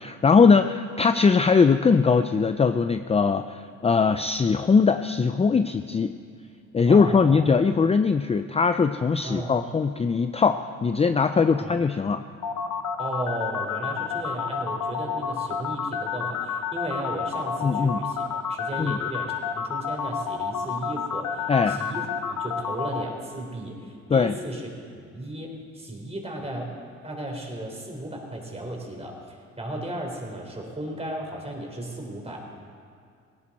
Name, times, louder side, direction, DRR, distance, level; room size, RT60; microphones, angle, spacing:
voice 1, 0.0-6.1 6.7-12.2 17.6-18.0 18.8-19.0 21.5-21.8 24.1-24.3, left 5 dB, 20° left, 9 dB, 0.4 m, -21 dB
voice 2, 6.9-7.5 9.2-9.6 11.5-11.7 13.0-24.7 24.9-26.7 27.0-32.4, right 1 dB, 20° right, 1 dB, 3.7 m, -35 dB
sound 1, 12.4-23.0, left 7 dB, 75° left, 0.9 m, -29 dB
18.0 x 17.5 x 4.2 m, 2.3 s
cardioid pair, 90°, 30 cm